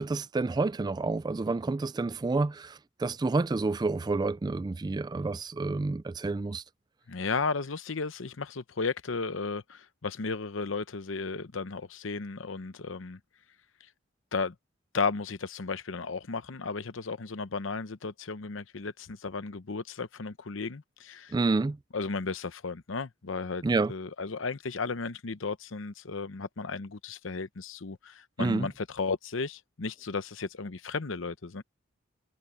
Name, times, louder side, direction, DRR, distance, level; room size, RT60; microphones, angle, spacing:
voice 1, 0.0-6.6 21.3-21.8 23.6-23.9 28.4-28.7, right 3 dB, 20° right, 0.3 m, -29 dB
voice 2, 7.1-13.2 14.3-14.5 14.9-21.3 21.9-23.6 23.9-31.6, left 4 dB, 70° left, 0.8 m, -34 dB
head